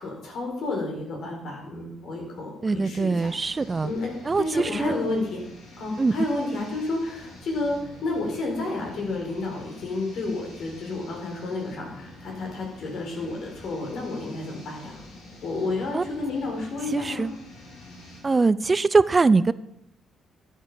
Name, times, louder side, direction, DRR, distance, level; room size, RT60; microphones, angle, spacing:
voice 1, 0.0-3.3 3.8-5.4 5.8-15.0 15.4-17.3, left 2 dB, 70° left, 0 dB, 4.5 m, -31 dB
voice 2, 2.6-3.9 4.2-4.9 6.0-6.1 15.9-16.0 16.9-17.3 18.2-19.5, right 4 dB, 30° right, 17 dB, 0.4 m, -22 dB
sound 1, 3.2-18.2, left 2 dB, 85° left, 4.0 m, -46 dB
12.5 x 7.4 x 5.6 m, 0.81 s
cardioid pair, 90°, 0 cm